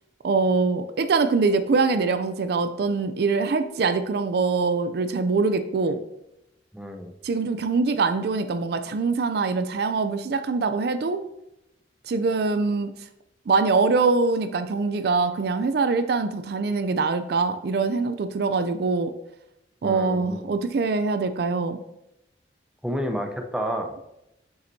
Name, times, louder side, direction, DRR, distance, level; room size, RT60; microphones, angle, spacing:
voice 1, 0.2-6.0 7.2-11.2 12.1-12.9 13.5-19.1 19.8-21.8, right 4 dB, 60° right, 10 dB, 0.4 m, -23 dB
voice 2, 6.7-7.1 19.8-20.5 22.8-23.9, equal, 5° right, 4 dB, 0.6 m, -30 dB
7.6 x 5.7 x 2.7 m, 0.86 s
head